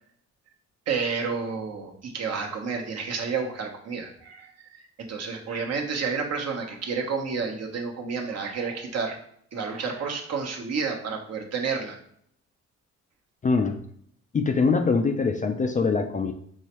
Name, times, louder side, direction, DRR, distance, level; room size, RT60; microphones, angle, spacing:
voice 1, 0.9-4.5 5.0-9.2 9.5-12.0, right 5 dB, 55° right, 1 dB, 1.0 m, -30 dB
voice 2, 13.4-13.8 14.3-16.3, left 4 dB, 25° left, 6 dB, 0.4 m, -23 dB
4.7 x 3.2 x 3.0 m, 0.65 s
cardioid pair, 90°, 30 cm